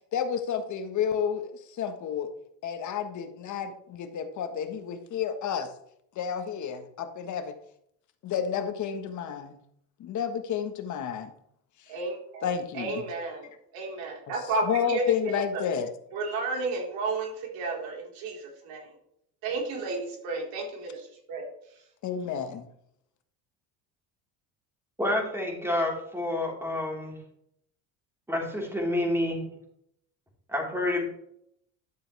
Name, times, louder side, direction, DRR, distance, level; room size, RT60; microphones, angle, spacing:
voice 1, 0.1-2.3 2.6-5.7 6.1-7.6 8.2-9.6 10.0-11.3 12.4-13.0 14.6-15.9 22.0-22.7, left 7 dB, 55° left, 8 dB, 1.4 m, -30 dB
voice 2, 11.9-12.5 12.7-15.6 16.1-18.8 19.4-21.4, right 3 dB, 80° right, -2 dB, 4.3 m, -32 dB
voice 3, 25.0-27.2 28.3-29.5 30.5-31.1, left 1 dB, 5° right, -2 dB, 4.1 m, -28 dB
12.0 x 7.2 x 3.4 m, 0.71 s
cardioid pair, 105°, 35 cm